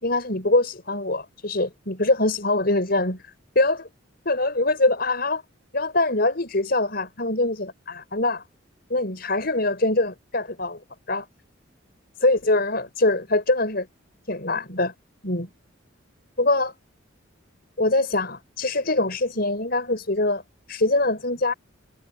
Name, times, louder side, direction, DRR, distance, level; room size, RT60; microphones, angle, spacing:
voice 1, 0.0-3.9 4.3-5.4 5.7-8.4 8.9-10.8 11.1-11.3 12.2-13.9 14.3-14.9 15.2-15.5 16.4-16.7 17.8-20.4 20.7-21.5, left 2 dB, 50° left, 5.7 m, -23 dB
head